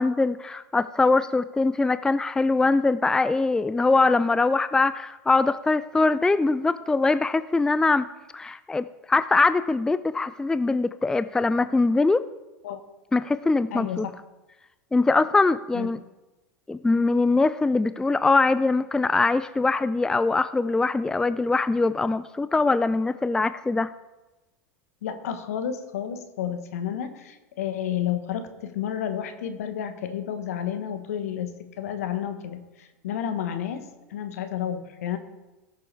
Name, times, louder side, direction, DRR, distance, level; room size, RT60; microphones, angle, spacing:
voice 1, 0.0-8.1 8.3-12.3 13.1-14.1 14.9-16.0 16.7-23.9, left 3 dB, 10° left, 14 dB, 0.3 m, -22 dB
voice 2, 13.7-14.1 15.7-15.9 25.0-35.2, left 9 dB, 70° left, 9 dB, 1.2 m, -31 dB
18.0 x 6.8 x 3.4 m, 1.1 s
hypercardioid pair, 90°, 8 cm